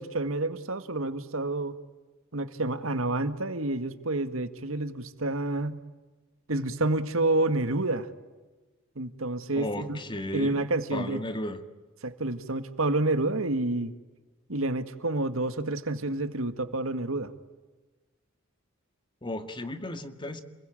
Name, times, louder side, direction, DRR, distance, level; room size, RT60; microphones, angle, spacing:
voice 1, 0.0-1.8 2.3-5.8 6.5-8.1 9.0-10.0 10.3-11.2 12.0-13.9 14.5-17.3, right 2 dB, 85° right, 10 dB, 1.9 m, -29 dB
voice 2, 9.5-10.6 10.9-11.6 19.2-20.4, left 1 dB, 25° left, 9 dB, 1.9 m, -34 dB
29.5 x 21.5 x 9.1 m, 1.2 s
head